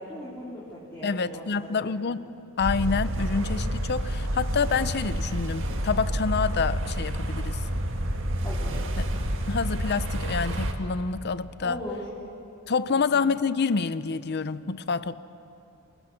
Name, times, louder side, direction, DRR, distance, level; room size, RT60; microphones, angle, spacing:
voice 1, 0.0-2.0 8.4-8.8 11.6-12.1 12.9-13.0, left 1 dB, 15° left, -7 dB, 3.8 m, -39 dB
voice 2, 1.0-2.2 2.6-7.6 9.5-11.8 12.7-15.2, left 5 dB, 50° left, 15 dB, 0.6 m, -27 dB
sound 1, 2.6-10.7, equal, 60° right, 1.9 m, -29 dB
27.5 x 20.5 x 6.4 m, 2.9 s
head